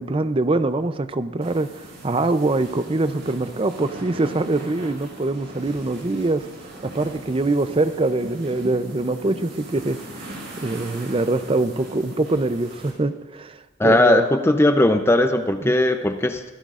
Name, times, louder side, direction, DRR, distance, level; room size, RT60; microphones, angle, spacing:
voice 1, 0.0-6.5 6.8-10.3 10.6-14.3 15.6-15.7, right 2 dB, 30° right, 12 dB, 0.5 m, -23 dB
sound 1, 1.4-12.9, right 1 dB, 55° right, 5.2 m, -39 dB
voice 2, 13.8-16.5, left 1 dB, 15° left, 6 dB, 0.6 m, -18 dB
23.0 x 16.0 x 2.5 m, 1.2 s
head